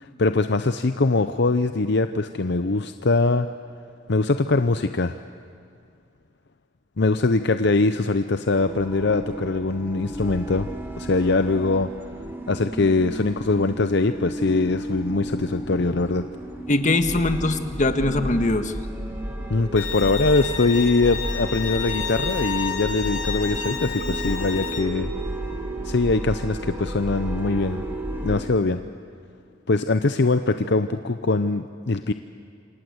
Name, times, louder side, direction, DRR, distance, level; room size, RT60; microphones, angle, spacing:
voice 1, 0.2-3.5 4.1-5.2 7.0-10.7 11.0-11.9 12.5-16.3 19.5-25.1 25.8-27.8 28.2-28.8 29.7-32.1, left 3 dB, 60° left, 10 dB, 0.7 m, -22 dB
sound 1, 8.6-28.4, right 1 dB, 10° right, 2.3 m, -32 dB
voice 2, 16.7-18.7, left 2 dB, 40° left, 8 dB, 1.6 m, -22 dB
Bowed string instrument, 19.8-24.8, left 7 dB, 90° left, 3.6 m, -31 dB
27.5 x 27.0 x 8.0 m, 2.5 s
head